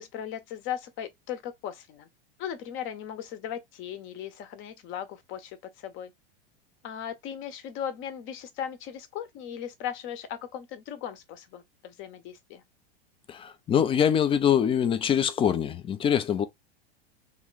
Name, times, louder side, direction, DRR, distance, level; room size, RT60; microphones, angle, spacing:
voice 1, 0.0-2.1 2.4-5.6 5.8-6.1 6.8-12.6, left 9 dB, 40° left, 0.8 m, -37 dB
voice 2, 13.3-16.5, left 8 dB, 20° left, 0.4 m, -24 dB
3.0 x 2.3 x 3.8 m
hypercardioid pair, 100°, 30 cm